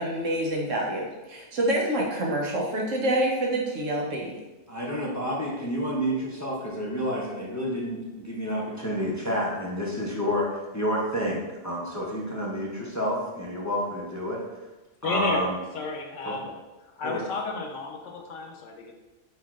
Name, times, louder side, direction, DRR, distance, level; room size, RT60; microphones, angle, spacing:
voice 1, 0.0-4.3, right 1 dB, 85° right, -2 dB, 1.3 m, -27 dB
voice 2, 4.7-14.4 15.0-15.6 16.2-16.3 17.0-17.2, equal, 20° left, -4 dB, 0.5 m, -29 dB
voice 3, 15.0-16.5 17.0-18.9, left 4 dB, 80° left, 2 dB, 1.1 m, -32 dB
4.7 x 4.5 x 2.4 m, 1.1 s
omnidirectional pair, 1.3 m